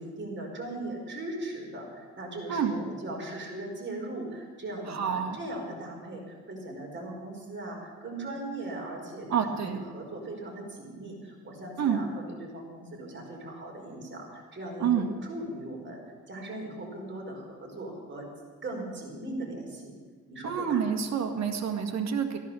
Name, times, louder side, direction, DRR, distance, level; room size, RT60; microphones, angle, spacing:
voice 1, 0.0-16.0 16.3-18.2 18.6-19.9 20.3-20.8, right 1 dB, 40° right, 0 dB, 4.9 m, -39 dB
voice 2, 4.9-5.4 9.3-9.8 11.8-12.0 14.8-15.1 20.4-22.4, right 7 dB, 60° right, 5 dB, 1.8 m, -28 dB
14.5 x 11.0 x 7.0 m, 1.5 s
cardioid pair, 90°, 30 cm